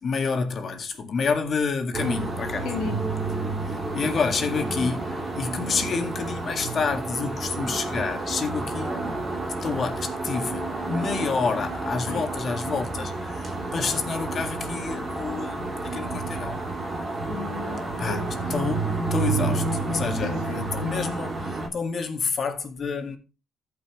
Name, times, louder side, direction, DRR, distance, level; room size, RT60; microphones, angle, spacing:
voice 1, 0.0-2.7 3.9-5.0 5.4-9.2 9.6-16.6 18.0-18.2 18.5-20.4 20.7-23.2, left 5 dB, 50° left, 1.9 m, -28 dB
sound 1, 1.9-21.7, right 2 dB, 35° right, 3.0 m, -30 dB
voice 2, 2.6-3.1 12.0-12.3 17.3-18.4 20.2-20.7, left 5 dB, 85° left, 1.8 m, -35 dB
15.0 x 5.5 x 3.1 m
cardioid pair, 90°, 0 cm